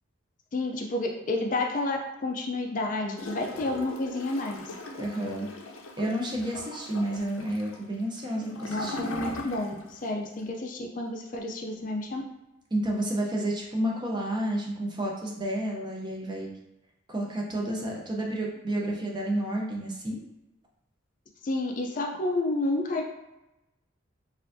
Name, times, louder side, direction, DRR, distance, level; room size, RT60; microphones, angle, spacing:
voice 1, 0.5-4.7 8.7-12.2 21.4-23.0, left 2 dB, 40° left, 2 dB, 0.4 m, -30 dB
Gurgling / Toilet flush, 3.2-10.0 10.3-10.4, left 2 dB, 85° left, 0.6 m, -40 dB
voice 2, 4.9-5.5 6.0-9.1 12.7-16.5 17.1-20.2, right 1 dB, 20° right, -1 dB, 0.6 m, -30 dB
4.4 x 2.5 x 2.6 m, 0.95 s
head